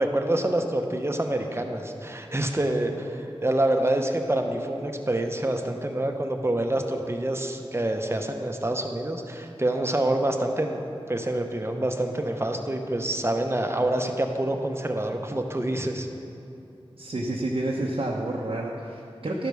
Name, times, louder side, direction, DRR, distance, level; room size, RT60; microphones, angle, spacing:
voice 1, 0.0-10.8 11.1-16.1, right 1 dB, 25° right, 4 dB, 0.8 m, -27 dB
voice 2, 17.0-19.5, right 2 dB, 65° right, -2 dB, 0.8 m, -29 dB
12.0 x 5.2 x 6.2 m, 2.7 s
wide cardioid pair, 55°, 10 cm